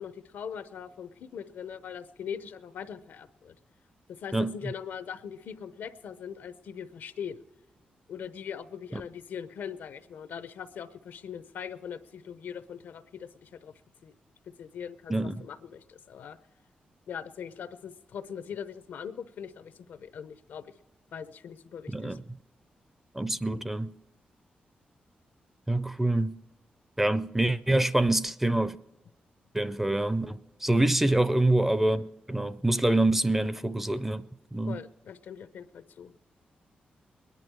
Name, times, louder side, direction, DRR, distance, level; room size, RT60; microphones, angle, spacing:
voice 1, 0.0-3.6 4.1-7.4 8.1-13.7 14.0-14.1 14.6-15.1 15.4-16.4 17.1-20.7 21.1-22.2 30.8-30.9 34.7-36.1, left 7 dB, 85° left, 0.7 m, -41 dB
voice 2, 15.1-15.5 21.9-22.2 23.2-23.9 25.7-26.4 27.0-28.8 29.5-34.2 34.5-34.8, right 1 dB, 10° right, 0.4 m, -26 dB
22.0 x 10.5 x 4.7 m
wide cardioid pair, 135°, 3 cm